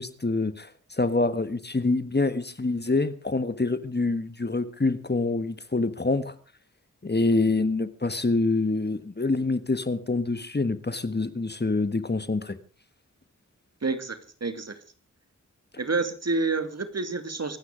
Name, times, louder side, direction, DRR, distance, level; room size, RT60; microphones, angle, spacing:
voice 1, 0.0-6.3 7.0-12.6, left 3 dB, 30° left, 13 dB, 1.5 m, -26 dB
voice 2, 13.8-14.8 15.8-17.6, right 3 dB, 55° right, 9 dB, 2.6 m, -28 dB
25.0 x 9.7 x 5.0 m, 0.39 s
cardioid pair, 50°, 31 cm